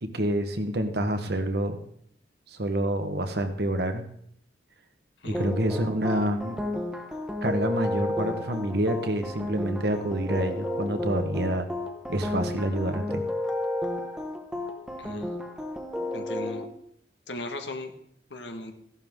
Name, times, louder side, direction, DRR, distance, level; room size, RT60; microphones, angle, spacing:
voice 1, 0.0-1.8 2.5-4.0 5.2-6.6 7.4-11.7 12.1-13.2, right 1 dB, 65° right, 7 dB, 1.4 m, -27 dB
voice 2, 5.2-5.5 15.0-15.3 16.1-16.6 17.3-17.9 18.3-18.7, left 2 dB, 85° left, 5 dB, 1.6 m, -37 dB
sound 1, 5.3-16.6, left 1 dB, 5° right, 1.1 m, -32 dB
15.0 x 11.5 x 3.7 m, 0.66 s
head